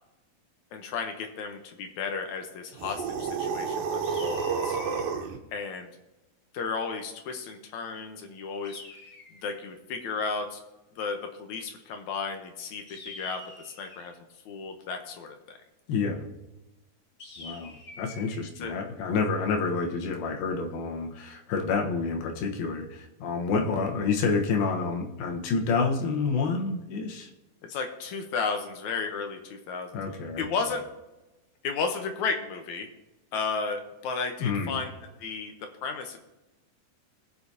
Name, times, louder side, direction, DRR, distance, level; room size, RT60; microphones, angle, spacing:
voice 1, 0.7-4.8 5.5-5.9 6.5-8.8 9.3-10.6 11.0-14.2 14.5-15.6 18.6-18.7 27.6-30.0 30.4-30.9 31.6-32.9 33.3-36.2, left 5 dB, 70° left, 5 dB, 2.0 m, -33 dB
sound 1, 2.8-5.4, right 5 dB, 80° right, 2.7 m, -30 dB
sound 2, 4.0-5.2 8.6-9.7 12.9-14.1 17.2-18.4, left 3 dB, 35° left, 2.1 m, -46 dB
voice 2, 15.9-16.2 17.4-27.3 29.9-30.5 34.4-34.8, left 4 dB, 85° left, 2 dB, 3.1 m, -28 dB
20.0 x 6.9 x 2.8 m, 1.0 s
omnidirectional pair, 4.1 m